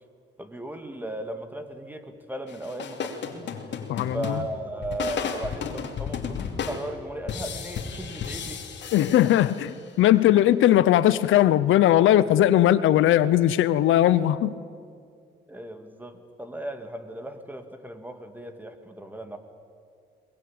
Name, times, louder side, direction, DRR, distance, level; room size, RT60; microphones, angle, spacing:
voice 1, 0.4-3.5 4.1-8.6 9.0-9.3 15.5-19.4, right 1 dB, 10° right, 7 dB, 2.4 m, -36 dB
sound 1, 2.5-9.9, left 6 dB, 65° left, 2.7 m, -34 dB
voice 2, 3.9-4.4 8.9-9.7 10.0-14.5, left 12 dB, 80° left, 15 dB, 0.8 m, -19 dB
22.5 x 21.0 x 8.8 m, 2.3 s
cardioid pair, 90°, 20 cm